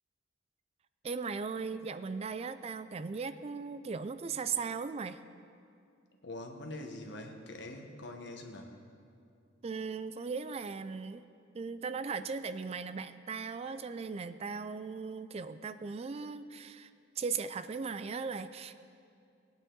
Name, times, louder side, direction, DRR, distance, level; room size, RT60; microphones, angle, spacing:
voice 1, 1.0-5.2 9.6-11.2 11.5-16.9 17.2-18.8, right 5 dB, 35° right, 12 dB, 0.3 m, -38 dB
voice 2, 6.2-8.7, left 1 dB, 65° left, 3 dB, 1.3 m, -44 dB
19.5 x 9.0 x 3.9 m, 2.5 s
head